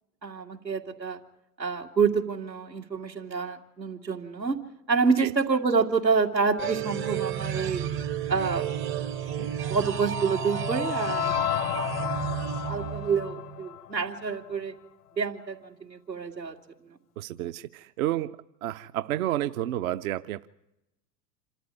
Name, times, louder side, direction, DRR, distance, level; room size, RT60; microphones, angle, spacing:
voice 1, 0.2-1.2 1.6-4.6 4.9-7.9 8.3-8.7 9.4-11.4 12.7-14.7 15.2-16.6, right 5 dB, 90° right, 2.5 m, -27 dB
sound 1, 6.6-13.6, right 9 dB, 25° right, 0.7 m, -32 dB
sound 2, 9.3-14.5, left 14 dB, 65° left, 0.8 m, -33 dB
voice 2, 17.2-20.5, right 13 dB, 55° right, 0.8 m, -31 dB
27.5 x 13.5 x 9.6 m
figure-of-eight pair, 85°, 50 cm